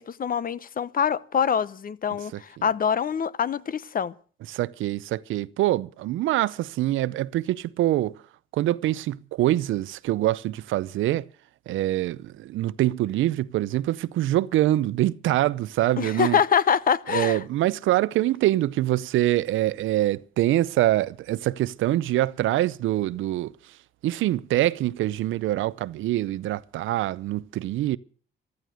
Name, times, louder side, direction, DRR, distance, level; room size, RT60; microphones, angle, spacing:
voice 1, 0.0-4.1 16.0-17.4, left 7 dB, 45° left, 0.9 m, -25 dB
voice 2, 4.5-8.2 8.5-11.2 11.7-16.4 17.1-23.5 24.0-28.0, right 15 dB, 85° right, 0.6 m, -24 dB
14.5 x 13.5 x 6.4 m
cardioid pair, 90°, 20 cm